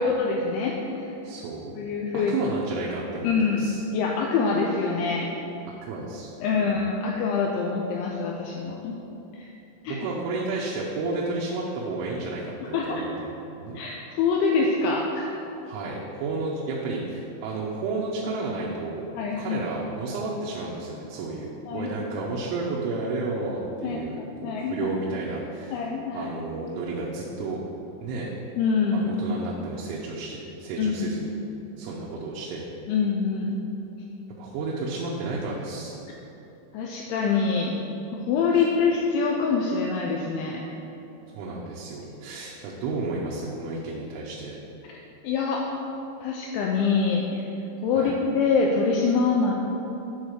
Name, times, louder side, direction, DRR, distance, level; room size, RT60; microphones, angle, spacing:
voice 1, 0.0-1.1 1.8-2.3 3.2-5.3 6.4-9.0 9.3-9.5 9.8-10.1 12.6-13.0 13.7-15.3 19.2-19.6 21.7-21.9 23.8-24.9 25.7-26.3 28.6-29.1 30.8-31.1 32.9-33.5 36.7-37.7 38.1-40.6 44.9-45.0 45.2-45.7 46.2-47.5 47.8-49.5, left 5 dB, 90° left, 0 dB, 2.6 m, -25 dB
voice 2, 1.2-1.7 2.1-3.8 5.8-6.8 9.9-13.8 15.7-19.1 19.4-27.6 28.0-28.3 28.9-31.3 31.8-32.6 34.4-36.0 41.4-44.6 47.9-48.2, right 3 dB, 80° right, -4 dB, 3.0 m, -32 dB
9.3 x 4.0 x 6.4 m, 2.9 s
omnidirectional pair, 6.0 m